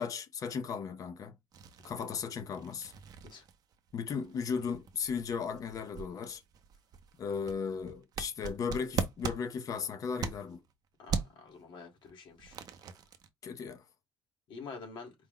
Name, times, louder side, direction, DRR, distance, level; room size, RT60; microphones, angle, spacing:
voice 1, 0.0-1.3 1.8-2.9 3.9-6.4 7.2-10.6 13.4-13.8, left 6 dB, 40° left, 0.6 m, -36 dB
sound 1, 1.5-10.7 11.1-11.5 12.0-13.3, right 6 dB, 45° right, 0.6 m, -40 dB
voice 2, 11.0-12.6 14.5-15.1, left 4 dB, 60° left, 1.8 m, -47 dB
4.5 x 2.1 x 3.7 m
cardioid pair, 175°, 9 cm